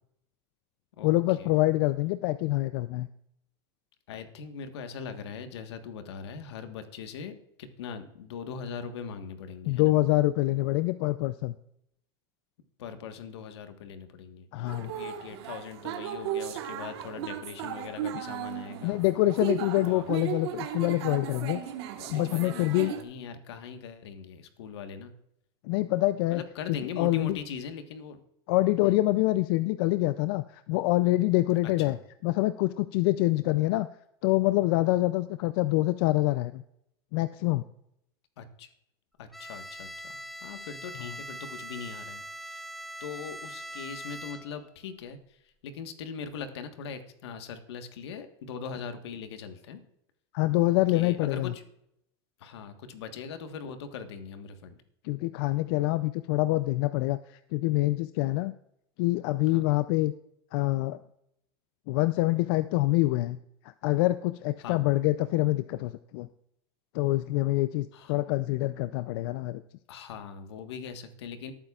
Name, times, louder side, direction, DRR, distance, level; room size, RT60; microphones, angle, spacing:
voice 1, 1.0-3.1 9.7-11.5 14.5-14.9 18.8-21.6 22.1-22.9 25.6-26.4 26.7-27.4 28.5-32.0 32.2-33.9 34.2-36.6 37.1-37.6 50.3-51.5 55.0-58.5 59.0-60.1 60.5-61.0 61.9-63.4 63.8-66.3 66.9-69.6, left 18 dB, 65° left, 13 dB, 0.5 m, -26 dB
voice 2, 4.1-10.0 12.8-19.0 19.8-20.0 22.0-25.1 26.3-28.2 28.8-29.0 31.6-32.0 38.4-38.7 39.2-39.9 40.4-42.6 43.0-45.2 45.6-49.8 50.9-51.6 52.4-54.7 59.5-59.7 64.6-64.8 67.9-68.1 69.9-71.5, left 6 dB, 90° left, 8 dB, 1.4 m, -41 dB
sound 1, 14.7-23.0, right 10 dB, 80° right, 1.5 m, -36 dB
Bowed string instrument, 39.3-44.7, right 1 dB, ahead, 0.5 m, -42 dB
18.5 x 9.0 x 2.4 m, 0.76 s
supercardioid pair, 135°, 14 cm